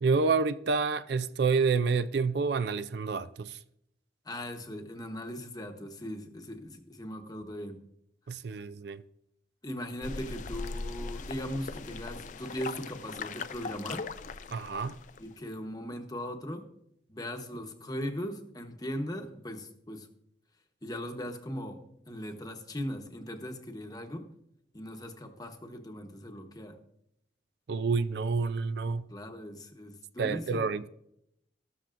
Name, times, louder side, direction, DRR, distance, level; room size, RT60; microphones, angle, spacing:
voice 1, 0.0-3.6 8.3-9.0 14.5-15.0 27.7-29.1 30.2-30.9, right 4 dB, 60° right, 0.4 m, -28 dB
voice 2, 4.2-7.8 9.6-14.1 15.2-16.7 17.1-20.1 20.8-24.3 24.7-26.8 29.1-30.7, equal, 20° left, 1.0 m, -39 dB
sound 1, 10.0-15.3, left 4 dB, 40° left, 0.4 m, -40 dB
13.5 x 13.0 x 2.5 m
head